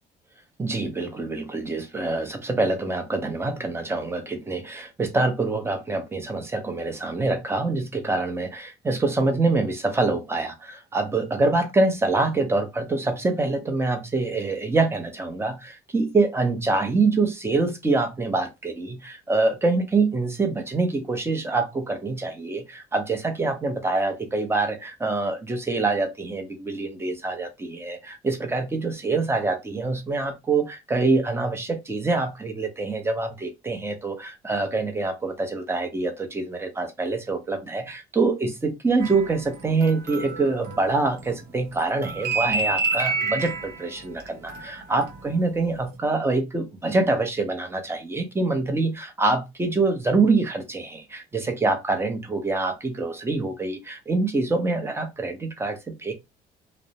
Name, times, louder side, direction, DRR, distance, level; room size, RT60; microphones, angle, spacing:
voice 1, 0.6-56.1, right 3 dB, 15° right, 0.7 m, -25 dB
sound 1, 39.0-41.4 41.7-45.3 45.6-45.9, right 4 dB, 80° right, 0.8 m, -29 dB
2.5 x 2.0 x 2.8 m
cardioid pair, 110°, 17 cm